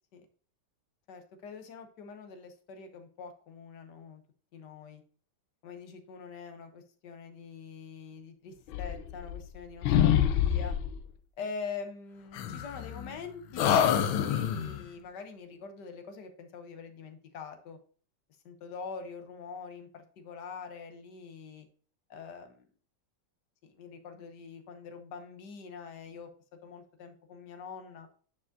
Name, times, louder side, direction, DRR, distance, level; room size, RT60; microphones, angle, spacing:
voice 1, 1.1-4.2 4.5-5.0 5.6-10.8 11.4-17.8 18.4-21.7 22.1-22.6 23.6-26.3 26.6-28.1, left 5 dB, 65° left, 7 dB, 1.4 m, -44 dB
sound 1, 8.7-9.6 9.8-11.0 12.3-13.2 13.6-14.8, left 9 dB, 85° left, 1.4 m, -27 dB
9.8 x 4.7 x 2.6 m, 0.43 s
omnidirectional pair, 2.2 m